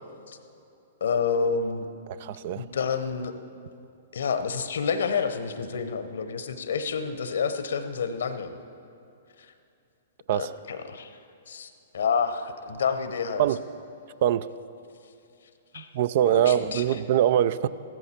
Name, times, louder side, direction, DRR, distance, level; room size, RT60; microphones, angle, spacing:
voice 1, 1.0-1.9 2.5-3.3 4.1-8.6 10.3-11.2 11.5-13.5 15.7-15.9 16.2-17.0, left 5 dB, 70° left, 10 dB, 0.9 m, -29 dB
voice 2, 2.2-2.6 10.3-10.5 13.4-13.6 14.2-14.5 15.8-17.7, right 11 dB, 55° right, 16 dB, 0.4 m, -23 dB
15.0 x 13.5 x 4.4 m, 2.6 s
hypercardioid pair, 115°, 0 cm